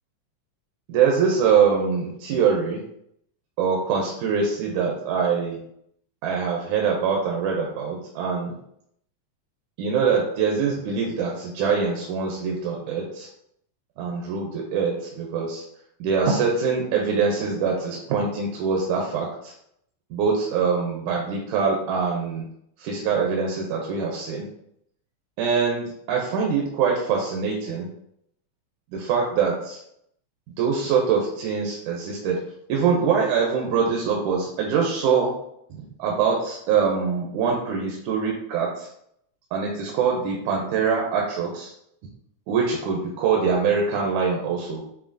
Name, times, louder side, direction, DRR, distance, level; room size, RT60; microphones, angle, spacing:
voice 1, 0.9-2.8 3.6-5.6 6.2-8.5 9.8-13.3 14.0-15.6 16.0-19.5 20.1-22.4 22.8-24.5 25.4-27.9 28.9-29.8 30.6-32.4 32.7-35.3 36.0-38.9 39.5-41.7 42.5-44.8, right 6 dB, 80° right, -1 dB, 2.1 m, -23 dB
7.1 x 2.8 x 2.6 m, 0.72 s
omnidirectional pair, 3.4 m